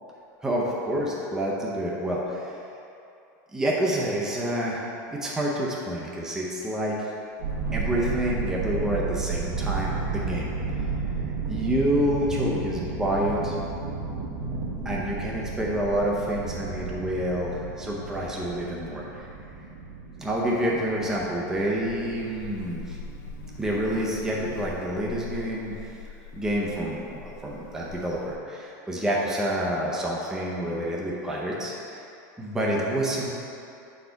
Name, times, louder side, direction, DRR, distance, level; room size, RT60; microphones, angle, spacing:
voice 1, 0.4-2.6 3.5-7.1 7.7-10.5 11.5-13.5 14.8-19.3 20.2-23.0 23.6-25.7 26.3-32.1 32.4-33.3, equal, 5° right, -4 dB, 0.6 m, -28 dB
sound 1, 7.4-24.6, right 4 dB, 70° right, 0.9 m, -33 dB
Buzz, 22.2-28.4, left 4 dB, 80° left, 0.6 m, -42 dB
6.5 x 4.3 x 4.5 m, 2.8 s
supercardioid pair, 170°, 10 cm